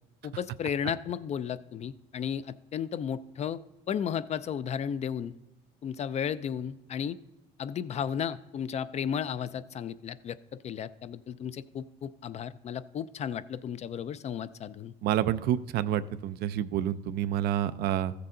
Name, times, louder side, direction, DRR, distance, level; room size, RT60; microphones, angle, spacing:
voice 1, 0.2-3.6 3.9-5.3 5.8-7.2 7.6-10.4 10.6-14.9, left 8 dB, 40° left, 15 dB, 0.4 m, -34 dB
voice 2, 15.0-18.1, right 11 dB, 70° right, 14 dB, 0.4 m, -28 dB
14.5 x 6.7 x 3.8 m, 0.94 s
cardioid pair, 110°, 17 cm